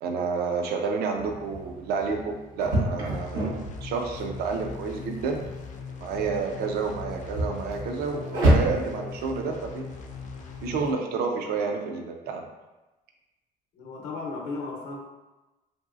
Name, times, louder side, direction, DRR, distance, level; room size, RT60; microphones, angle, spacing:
voice 1, 0.0-5.4 6.0-9.9 10.6-12.4, right 5 dB, 70° right, 3 dB, 0.4 m, -30 dB
sound 1, 1.1-10.8, right 1 dB, 85° right, 1.0 m, -30 dB
sound 2, 3.1-10.9, left 6 dB, 50° left, 0.4 m, -40 dB
voice 2, 13.7-15.0, left 3 dB, 85° left, -2 dB, 0.7 m, -35 dB
3.0 x 2.6 x 2.4 m, 1.1 s
cardioid pair, 110°, 17 cm